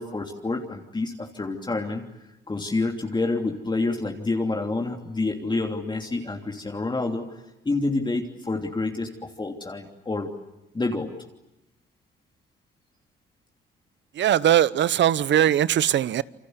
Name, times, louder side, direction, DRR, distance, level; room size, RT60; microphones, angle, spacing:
voice 1, 0.0-2.0 2.5-7.2 7.6-10.3 10.7-11.1, left 3 dB, 20° left, 3.1 m, -28 dB
voice 2, 14.2-16.2, right 11 dB, 65° right, 1.0 m, -20 dB
28.5 x 25.0 x 8.1 m
cardioid pair, 90°, 20 cm